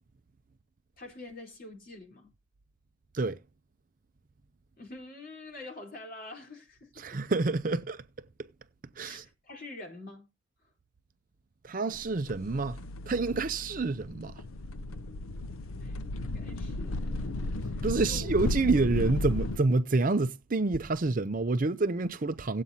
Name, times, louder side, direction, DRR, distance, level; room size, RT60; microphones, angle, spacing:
voice 1, 1.0-2.3 4.8-7.2 9.0-10.3 15.8-17.3 17.7-18.3, left 2 dB, 45° left, 3.8 m, -46 dB
voice 2, 7.0-8.5 9.0-9.2 11.6-12.8 13.1-14.4 17.8-22.6, right 3 dB, 40° right, 0.5 m, -28 dB
sound 1, 11.9-19.6, left 2 dB, 90° left, 0.6 m, -34 dB
18.0 x 8.3 x 2.7 m
head